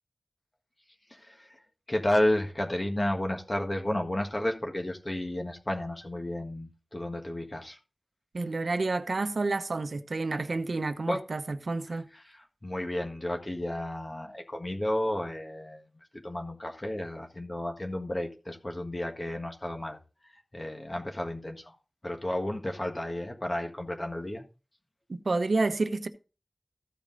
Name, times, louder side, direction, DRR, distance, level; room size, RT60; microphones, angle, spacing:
voice 1, 1.1-1.6 1.9-7.8 11.1-11.2 11.9-15.8 16.1-20.0 20.5-21.7 22.0-24.4, left 1 dB, 30° left, 1.5 m, -32 dB
voice 2, 8.3-12.1 25.1-26.1, right 3 dB, 80° right, 0.8 m, -29 dB
14.5 x 5.0 x 3.9 m
wide cardioid pair, 75°, 0 cm